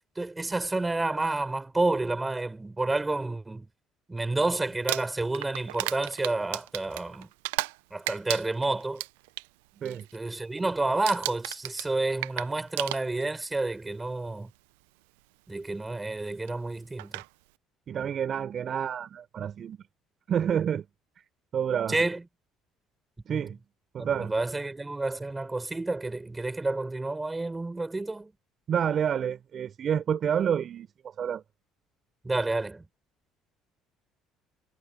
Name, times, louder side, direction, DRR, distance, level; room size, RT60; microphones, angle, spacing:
voice 1, 0.2-3.7 4.1-7.3 7.9-9.0 10.1-14.5 15.5-17.2 21.9-22.2 23.3-23.5 24.0-28.3 32.2-32.8, right 2 dB, 15° right, 5.7 m, -30 dB
Crumpling crinkling, 4.7-7.8 8.1-9.5 9.8-10.2 10.4-10.7 11.1-13.4 14.4-14.5 16.5-16.6 17.0-17.3, right 21 dB, 85° right, 0.7 m, -34 dB
voice 2, 17.9-19.8 20.3-20.9 21.5-22.0 23.3-23.6 23.9-24.3 28.7-30.9 31.2-31.4, right 8 dB, 50° right, 4.4 m, -28 dB
hypercardioid pair, 65°, 0 cm